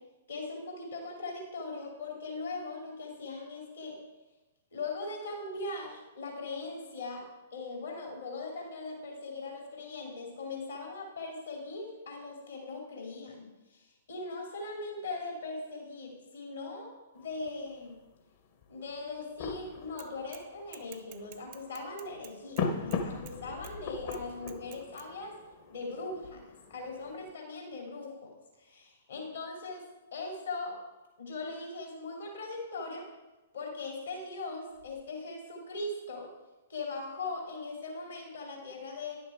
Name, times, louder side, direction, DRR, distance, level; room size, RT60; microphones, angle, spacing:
voice 1, 0.3-4.0 4.7-7.2 7.5-16.9 17.1-18.0 18.7-25.4 25.7-26.4 26.7-28.3 28.6-29.8 30.1-30.8 31.2-33.1 33.5-36.3 36.7-39.2, left 3 dB, 70° left, 0 dB, 2.7 m, -40 dB
sound 1, 17.2-27.3, left 4 dB, 45° left, 1.0 m, -40 dB
Bicycle / Mechanisms, 20.0-20.5 20.7-23.4 23.6-23.7 24.1-25.1, right 15 dB, 40° right, 0.5 m, -51 dB
sound 2, 22.8-24.5 24.9-25.0 25.4-25.5 25.9-27.0 28.0-28.1 29.6-29.7 30.2-30.3 31.0-31.3 32.6-32.7 32.9-33.0 34.7-35.0 35.7-35.8, left 4 dB, 85° left, 3.3 m, -52 dB
11.0 x 6.6 x 4.5 m, 1.1 s
figure-of-eight pair, 110°, 0 cm